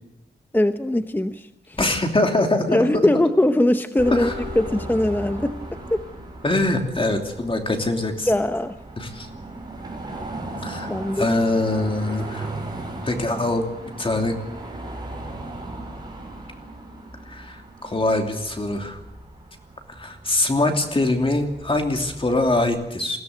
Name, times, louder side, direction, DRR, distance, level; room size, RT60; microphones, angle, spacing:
voice 1, 0.5-1.8 2.7-5.6 5.9-6.0 8.3-8.7 10.9-11.2, left 1 dB, 10° left, 9 dB, 0.8 m, -21 dB
voice 2, 1.8-3.0 4.1-4.3 6.4-8.3 9.0-9.3 10.6-12.5 13.0-13.6 14.0-14.3 17.2-19.0 19.9-23.2, left 2 dB, 30° left, 4 dB, 2.9 m, -23 dB
Keyboard (musical), 4.0-7.3, left 10 dB, 50° left, 1.6 m, -41 dB
Car passing by / Traffic noise roadway noise / Engine, 4.0-22.7, right 2 dB, 25° right, 6.5 m, -37 dB
21.5 x 16.5 x 8.0 m, 0.91 s
wide cardioid pair, 110°, 18 cm